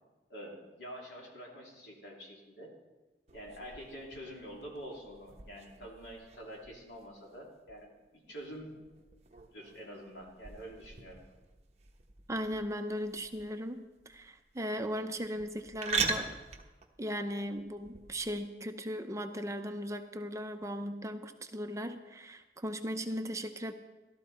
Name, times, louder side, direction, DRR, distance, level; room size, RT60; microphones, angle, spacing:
voice 1, 0.3-2.7 3.3-8.7 9.5-11.2, equal, 75° left, -2 dB, 3.3 m, -47 dB
sound 1, 3.3-18.3, right 4 dB, 40° right, 1.0 m, -42 dB
voice 2, 12.3-16.4 17.0-23.7, equal, 20° right, 7 dB, 0.6 m, -37 dB
14.0 x 13.0 x 4.3 m, 1.1 s
head